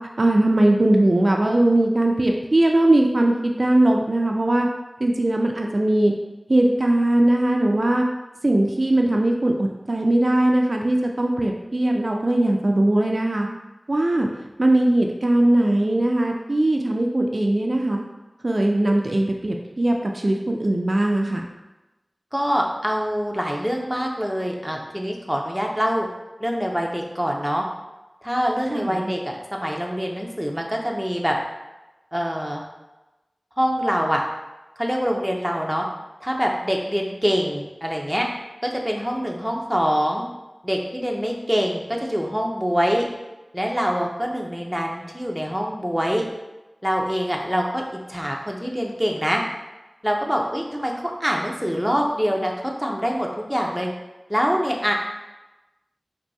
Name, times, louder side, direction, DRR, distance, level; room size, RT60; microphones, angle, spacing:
voice 1, 0.2-4.7 5.0-6.1 6.5-8.0 8.4-13.5 13.9-14.3 14.6-18.0 18.4-21.4 28.7-29.2, right 1 dB, 60° right, 1 dB, 0.3 m, -20 dB
voice 2, 22.3-26.1 26.4-27.7 28.2-31.4 32.1-32.6 33.6-34.2 34.8-35.9 36.2-38.3 38.6-40.2 40.6-43.1 43.5-46.3 46.8-49.4 50.0-53.9 54.3-54.9, equal, ahead, 0 dB, 0.6 m, -24 dB
4.4 x 2.6 x 2.7 m, 1.0 s
wide cardioid pair, 50°, 0 cm